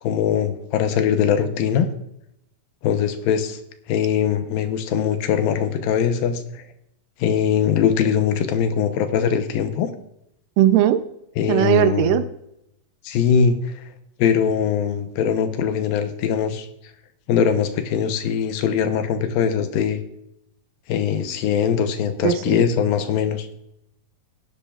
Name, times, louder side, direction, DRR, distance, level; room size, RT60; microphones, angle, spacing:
voice 1, 0.0-1.9 2.8-3.6 3.9-6.6 7.2-9.9 11.4-12.2 13.0-13.7 14.2-16.7 17.3-20.0 20.9-23.5, left 8 dB, 85° left, 8 dB, 2.8 m, -21 dB
voice 2, 10.6-11.0 11.5-12.2 22.2-22.6, right 12 dB, 80° right, 10 dB, 2.2 m, -18 dB
17.0 x 10.5 x 2.4 m, 0.79 s
omnidirectional pair, 4.0 m